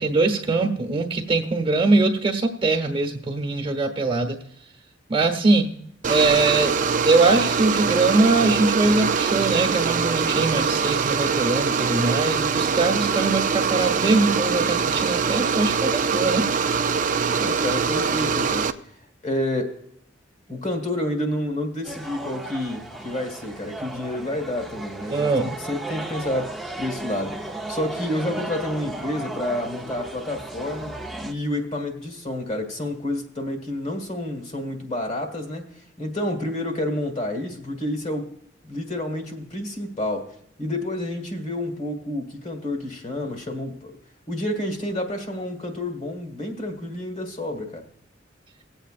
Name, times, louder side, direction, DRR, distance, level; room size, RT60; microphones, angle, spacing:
voice 1, 0.0-4.4 5.1-5.7 6.1-6.7 7.0-16.5 25.1-25.6, right 3 dB, 30° right, 4 dB, 1.2 m, -22 dB
sound 1, 6.0-18.7, right 6 dB, 45° right, 0.5 m, -23 dB
voice 2, 17.3-19.8 20.5-38.3 38.6-43.9 44.3-47.9, left 1 dB, 40° left, 3 dB, 1.7 m, -29 dB
sound 2, 21.8-31.3, right 2 dB, ahead, 0.7 m, -35 dB
19.0 x 8.0 x 2.5 m, 0.71 s
head